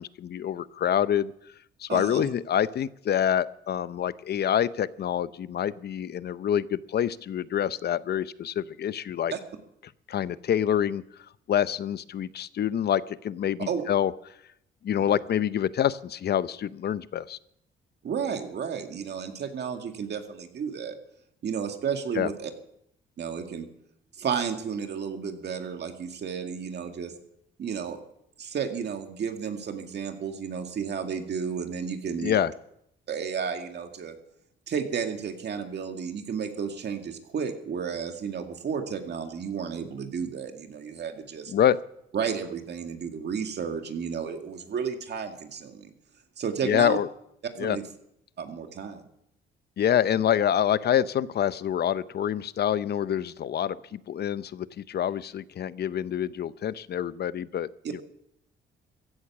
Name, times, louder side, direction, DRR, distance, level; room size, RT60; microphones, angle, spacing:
voice 1, 0.0-1.3 1.8-9.3 10.1-11.0 11.5-14.1 14.8-17.4 22.2-22.3 32.2-32.5 41.5-41.8 46.6-47.1 47.6-47.8 49.8-57.7, left 10 dB, 55° left, 16 dB, 0.7 m, -26 dB
voice 2, 1.9-2.3 9.3-9.4 13.7-13.8 15.0-15.1 18.0-21.0 21.4-22.5 23.2-23.7 24.1-27.1 27.6-28.0 28.4-32.5 33.1-34.1 34.7-41.5 42.1-45.9 46.4-47.0 47.6-47.8 48.4-49.0, right 6 dB, 60° right, 5 dB, 2.2 m, -32 dB
15.5 x 11.0 x 7.1 m, 0.75 s
cardioid pair, 90°, 20 cm